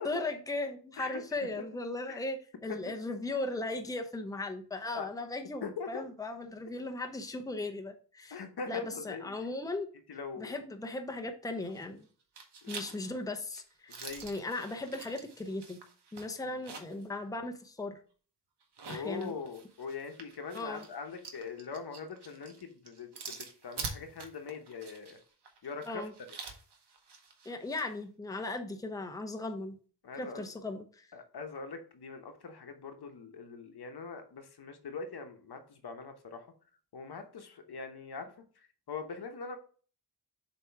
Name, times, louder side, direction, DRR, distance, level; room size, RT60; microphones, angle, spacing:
voice 1, 0.0-9.9 10.4-12.0 12.7-13.9 14.2-15.8 16.1-18.0 18.9-19.3 20.5-20.8 25.9-26.1 27.5-29.8 30.2-31.1, left 2 dB, 10° left, 5 dB, 0.7 m, -37 dB
voice 2, 5.6-6.0 8.3-9.3 10.1-10.5 12.6-13.0 13.9-14.3 16.4-16.5 18.9-25.2 25.6-26.1 30.0-30.4 31.1-36.5 36.9-39.6, left 5 dB, 65° left, 5 dB, 1.1 m, -42 dB
sound 1, 11.6-12.0 12.4-17.1 17.4-17.5 18.6-27.9, right 5 dB, 75° right, 1.1 m, -46 dB
7.1 x 3.0 x 4.5 m, 0.41 s
wide cardioid pair, 80°, 41 cm